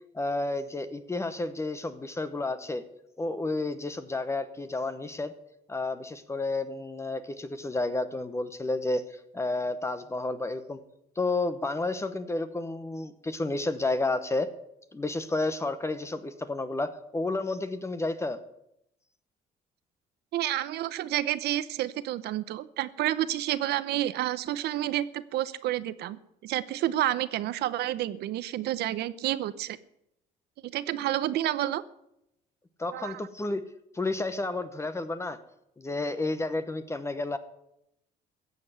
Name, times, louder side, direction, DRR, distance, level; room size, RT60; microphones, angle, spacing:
voice 1, 0.1-2.8 3.2-5.3 5.7-9.0 9.3-10.8 11.2-14.5 14.9-18.4 32.8-33.6 33.9-35.4 35.8-37.4, left 2 dB, 15° left, 11 dB, 1.0 m, -31 dB
voice 2, 20.3-29.8 30.7-31.8 32.9-33.2, right 13 dB, 75° right, 15 dB, 0.8 m, -30 dB
15.0 x 7.8 x 8.0 m, 0.80 s
cardioid pair, 110°, 17 cm